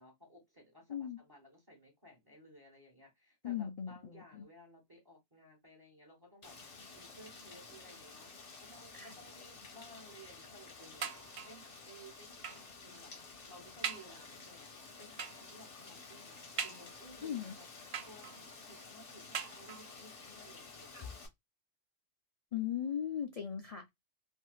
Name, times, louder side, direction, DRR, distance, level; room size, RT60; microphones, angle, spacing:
voice 1, 0.0-8.3 8.6-13.1 13.5-17.7 18.1-21.2, equal, 20° right, 1.0 m, -58 dB
voice 2, 3.4-4.4 8.9-9.1 17.2-17.5 20.9-21.1 22.5-23.9, left 9 dB, 65° left, 0.3 m, -38 dB
Rain, 6.4-21.3, left 4 dB, 85° left, 1.4 m, -52 dB
sound 1, 11.0-11.7 12.4-12.8 13.3-13.4 13.8-14.2 15.2-15.5 16.6-17.2 17.9-18.5 19.3-20.0 20.8-20.9 21.3-21.4, right 7 dB, 60° right, 0.4 m, -42 dB
3.5 x 2.6 x 2.3 m
omnidirectional pair, 1.2 m